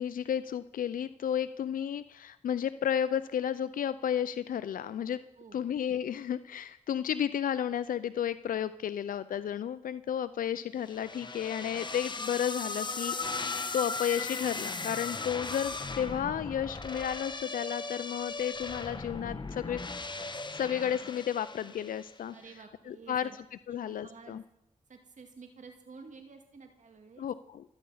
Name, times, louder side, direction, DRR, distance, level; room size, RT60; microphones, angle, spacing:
voice 1, 0.0-5.2 5.5-19.8 20.5-22.3 22.9-23.3 23.7-24.4 27.2-27.6, left 9 dB, 85° left, 14 dB, 0.5 m, -32 dB
voice 2, 5.4-5.7 22.3-23.4 23.7-24.4 24.9-27.3, right 5 dB, 65° right, 5 dB, 2.0 m, -51 dB
sound 1, 10.9-22.2, left 3 dB, 35° left, 1.2 m, -37 dB
26.5 x 9.8 x 5.6 m, 0.81 s
cardioid pair, 65°, 14 cm